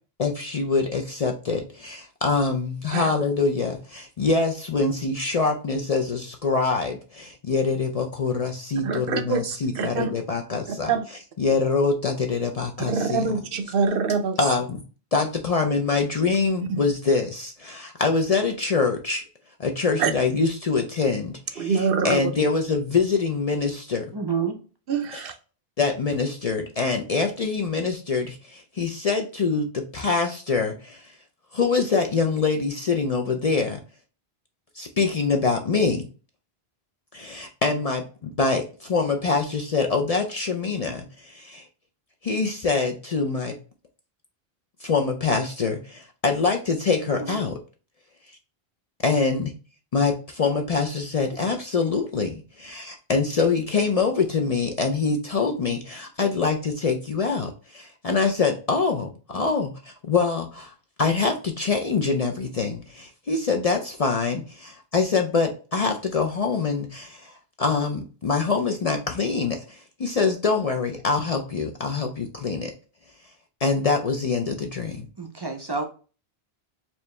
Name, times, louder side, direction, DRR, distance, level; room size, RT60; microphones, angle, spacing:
voice 1, 0.2-10.9 11.4-13.3 14.4-14.8 15.1-19.2 19.6-24.1 25.1-25.2 25.8-31.1 31.5-33.8 34.7-36.1 37.1-41.7 42.2-43.5 44.8-47.6 49.0-49.5 49.9-60.7 61.0-67.3 67.6-72.7 73.6-75.1, left 4 dB, 45° left, 0.5 m, -25 dB
voice 2, 8.8-10.1 10.8-11.0 12.8-14.4 20.0-20.1 21.6-22.2 24.9-25.3, right 5 dB, 65° right, 0.7 m, -25 dB
voice 3, 24.1-24.6 47.2-47.4 75.2-75.8, right 5 dB, 30° right, 0.5 m, -28 dB
4.5 x 2.7 x 3.1 m
omnidirectional pair, 1.0 m